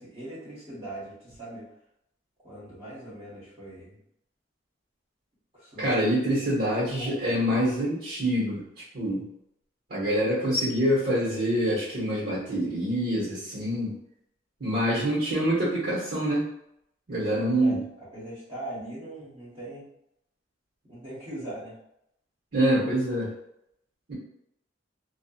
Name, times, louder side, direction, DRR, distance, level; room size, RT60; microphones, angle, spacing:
voice 1, 0.0-1.7 2.4-4.0 5.5-5.9 6.3-6.6 7.0-7.2 17.3-19.8 20.9-21.8, right 1 dB, 30° right, -9 dB, 1.1 m, -41 dB
voice 2, 5.8-9.2 9.9-13.9 14.6-16.5 17.1-17.8 22.5-23.3 24.1-24.2, equal, 65° right, -8 dB, 1.1 m, -26 dB
2.6 x 2.3 x 2.4 m, 0.77 s
head